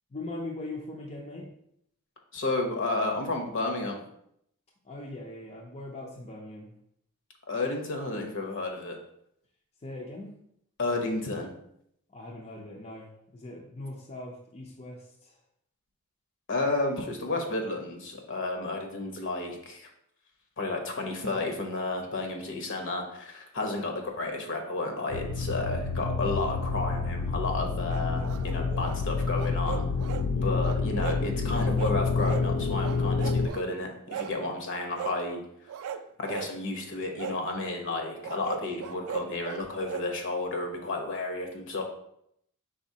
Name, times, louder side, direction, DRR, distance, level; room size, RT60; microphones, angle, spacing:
voice 1, 0.1-1.5 4.8-6.7 9.8-10.4 12.1-15.4 30.2-30.6, left 2 dB, 30° left, -1 dB, 0.5 m, -41 dB
voice 2, 2.3-4.0 7.5-9.0 10.8-11.5 16.5-19.9 20.6-29.9 30.4-35.4 36.2-41.8, left 2 dB, 60° left, 3 dB, 0.8 m, -32 dB
sound 1, 25.1-33.5, left 4 dB, 85° left, 0.4 m, -28 dB
sound 2, 27.9-29.0 29.4-30.3 30.6-31.2 31.5-32.5 32.8-33.6 34.1-34.4 34.9-35.2 35.7-36.5 37.2-37.4 38.2-40.1, right 8 dB, 65° right, 0.3 m, -38 dB
5.0 x 3.8 x 2.7 m, 0.73 s
head